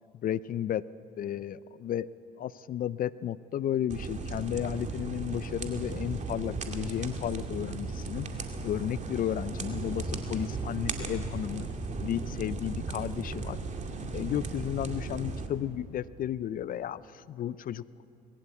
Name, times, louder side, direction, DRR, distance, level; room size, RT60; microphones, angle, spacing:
voice 1, 0.2-0.8 1.2-2.1 2.4-8.3 8.6-11.7 12.0-13.6 14.1-17.8, left 11 dB, 45° left, 19 dB, 0.5 m, -33 dB
sound 1, 3.9-15.5, right 3 dB, 40° right, 2.3 m, -36 dB
20.0 x 16.5 x 8.4 m, 2.8 s
hypercardioid pair, 60°, 19 cm